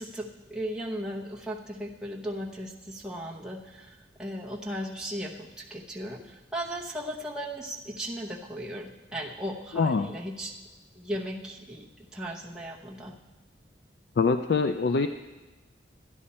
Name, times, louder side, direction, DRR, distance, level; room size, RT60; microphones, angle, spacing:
voice 1, 0.0-10.6 10.9-13.1, equal, 5° right, -3 dB, 0.9 m, -36 dB
voice 2, 9.7-10.2 14.2-15.1, left 4 dB, 60° left, 8 dB, 0.3 m, -24 dB
12.5 x 9.8 x 4.3 m, 1.2 s
head